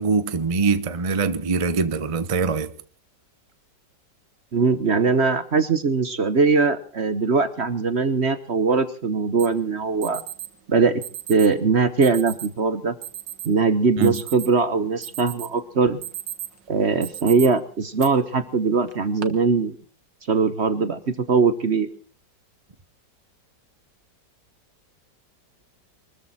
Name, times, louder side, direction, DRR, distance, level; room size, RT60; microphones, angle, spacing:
voice 1, 0.0-2.7 14.0-14.2, right 4 dB, 30° right, 0.7 m, -23 dB
voice 2, 4.5-10.2 10.7-11.0 11.3-12.9 13.4-16.0 16.7-19.8 20.3-21.9, right 4 dB, 45° right, 1.1 m, -21 dB
Alarm, 9.4-9.5 10.0-10.5 11.0-11.5 12.0-12.5 13.0-13.5 13.9-14.6 15.0-15.5 15.9-16.6 17.0-17.5 18.0-18.1 18.9-19.2, right 12 dB, 75° right, 2.1 m, -35 dB
23.5 x 14.0 x 4.2 m
omnidirectional pair, 2.0 m